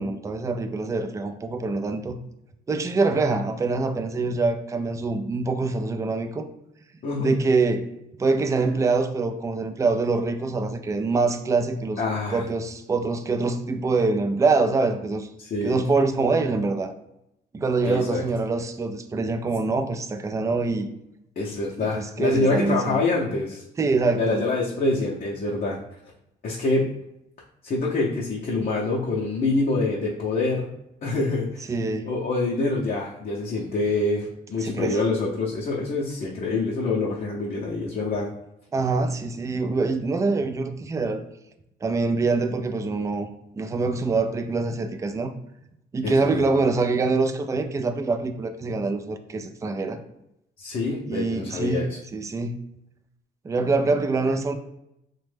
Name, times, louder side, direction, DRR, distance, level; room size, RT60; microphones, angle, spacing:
voice 1, 0.0-2.2 2.7-6.5 7.2-7.9 8.2-12.0 12.3-15.3 15.6-16.9 17.5-20.9 21.8-23.0 23.8-24.5 31.7-32.1 34.6-35.0 38.7-41.2 41.8-43.3 43.6-45.3 45.9-50.0 51.1-51.8 52.1-52.6 53.4-54.5, right 3 dB, 15° right, 7 dB, 0.3 m, -24 dB
voice 2, 7.0-7.4 12.0-12.4 15.4-15.8 17.8-18.2 21.4-23.6 24.2-25.8 26.4-26.8 27.6-30.7 31.0-31.7 32.1-38.3 46.0-46.5 50.6-52.0, left 3 dB, 45° left, -4 dB, 0.6 m, -26 dB
3.0 x 2.2 x 3.3 m, 0.85 s
cardioid pair, 90°, 20 cm